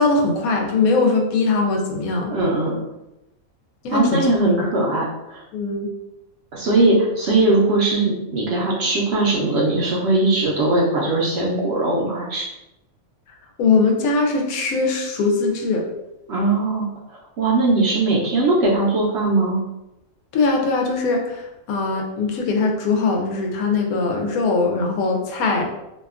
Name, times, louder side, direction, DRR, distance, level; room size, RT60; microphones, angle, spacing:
voice 1, 0.0-2.3 3.8-4.7 5.5-5.9 13.6-15.9 20.3-25.6, left 3 dB, 85° left, 1 dB, 1.0 m, -21 dB
voice 2, 2.3-2.8 3.9-5.4 6.5-12.5 16.3-19.6, right 2 dB, 65° right, -4 dB, 0.7 m, -20 dB
2.7 x 2.3 x 2.3 m, 0.93 s
omnidirectional pair, 1.5 m